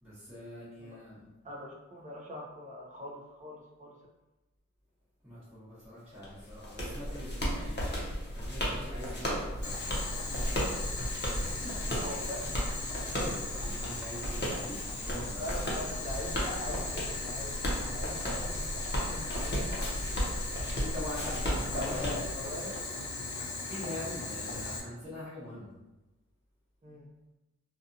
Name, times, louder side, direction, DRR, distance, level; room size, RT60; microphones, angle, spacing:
voice 1, 0.0-1.3 5.2-8.0 8.3-11.0 11.4-12.1 13.1-15.7 20.8-22.5 23.7-25.8, left 1 dB, 5° right, -12 dB, 1.1 m, -43 dB
voice 2, 1.4-3.9 12.0-12.6 13.7-13.9 15.1-17.6 17.9-20.1 21.5-21.9 22.3-22.7 26.8-27.1, left 1 dB, 25° right, -3 dB, 0.6 m, -43 dB
sound 1, 6.2-22.8, equal, 40° left, 0.8 m, -35 dB
Boiling, 9.6-24.8, left 3 dB, 75° left, 0.5 m, -38 dB
2.6 x 2.4 x 2.6 m, 1.0 s
wide cardioid pair, 65°, 29 cm